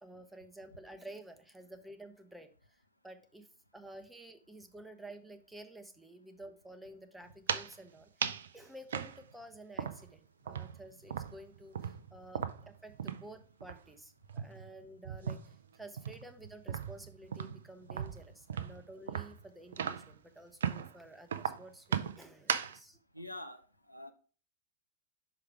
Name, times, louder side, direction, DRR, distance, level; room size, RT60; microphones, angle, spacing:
voice 1, 0.0-2.8 3.0-3.5 3.7-8.1 8.5-12.4 12.8-23.0, right 1 dB, 5° right, 0.8 m, -51 dB
sound 1, 7.3-7.8 8.2-8.5 8.9-10.2 10.5-13.3 13.6-13.8 14.2-15.6 16.0-20.2 20.6-20.9 21.3-22.8, right 8 dB, 65° right, 0.4 m, -37 dB
voice 2, 23.1-23.6 23.9-24.1, left 1 dB, 85° left, 0.6 m, -45 dB
5.8 x 4.9 x 4.7 m
figure-of-eight pair, 90°, 0 cm